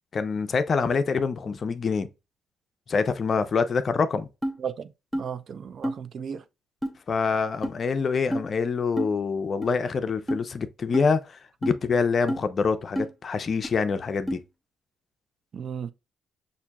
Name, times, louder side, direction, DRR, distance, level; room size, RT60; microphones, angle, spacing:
voice 1, 0.1-2.1 2.9-4.3 7.1-14.4, left 5 dB, 45° left, 0.5 m, -26 dB
sound 1, 4.4-4.6 5.1-5.3 5.8-6.0 6.8-6.9 7.6-7.8 8.3-8.5 9.0-9.1 9.6-9.7 10.3-10.4 10.9-11.1 11.6-11.8 12.3-12.4 12.9-13.1 13.6-13.7 14.3-14.4, equal, 10° right, 0.9 m, -28 dB
voice 2, 4.6-6.4 15.5-15.9, right 7 dB, 55° right, 0.4 m, -35 dB
5.8 x 2.6 x 2.2 m
cardioid pair, 90°, 0 cm